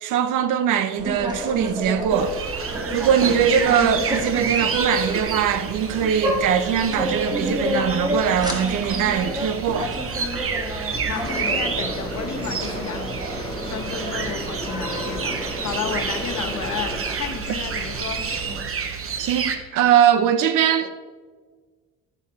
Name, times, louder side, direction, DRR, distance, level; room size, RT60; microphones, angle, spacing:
voice 1, 0.0-2.4 2.9-9.9 19.2-20.9, right 9 dB, 90° right, 0.8 m, -21 dB
sound 1, 1.0-18.6, equal, 15° right, 1.9 m, -30 dB
sound 2, 2.1-19.6, right 6 dB, 45° right, 1.2 m, -30 dB
voice 2, 11.0-13.1 13.7-18.2, left 7 dB, 65° left, 1.3 m, -32 dB
sound 3, 11.2-17.0, equal, 15° left, 3.1 m, -33 dB
12.0 x 7.3 x 4.4 m
cardioid pair, 90°, 30 cm